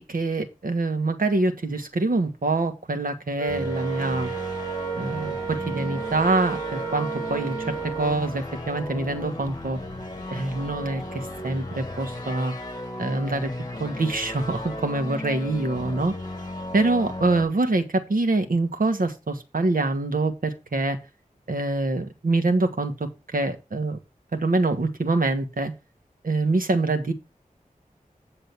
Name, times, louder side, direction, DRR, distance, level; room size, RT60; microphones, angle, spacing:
voice 1, 0.0-4.3 4.9-9.8 10.3-12.5 13.0-13.5 13.8-16.1 16.7-21.0 21.5-24.0 24.3-25.7 26.2-27.1, right 2 dB, 75° right, 6 dB, 1.5 m, -25 dB
Wind instrument woodwind instrument, 3.4-8.3, right 8 dB, 25° right, 2.4 m, -32 dB
sound 1, 3.5-17.4, left 1 dB, 25° left, 2.5 m, -35 dB
9.4 x 3.9 x 6.8 m, 0.27 s
wide cardioid pair, 75°, 15 cm